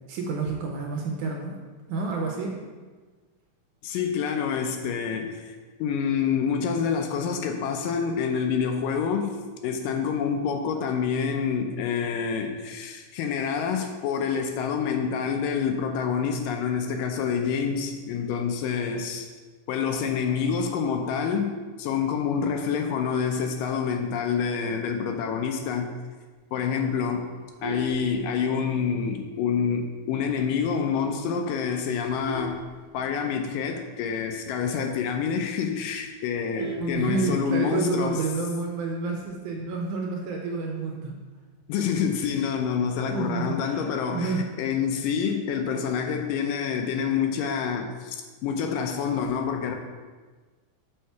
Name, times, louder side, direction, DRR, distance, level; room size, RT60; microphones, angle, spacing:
voice 1, 0.1-1.6 1.9-2.6 36.8-41.2 43.1-44.5, right 4 dB, 75° right, 0 dB, 2.0 m, -29 dB
voice 2, 3.8-9.4 9.6-19.3 19.7-21.5 21.8-25.9 26.5-27.3 27.6-32.6 32.9-38.2 41.7-49.8, left 6 dB, 80° left, 4 dB, 2.1 m, -27 dB
Vehicle horn car horn honking, 27.3-28.8 29.3-29.5 29.8-29.9 30.3-30.4 30.7-31.1 31.7-33.5 33.9-34.0 34.2-34.3 34.7-34.8 35.2-35.3 35.6-37.6 38.8-39.2, equal, 45° right, 0.4 m, -38 dB
6.5 x 5.6 x 4.5 m, 1.4 s
omnidirectional pair, 4.1 m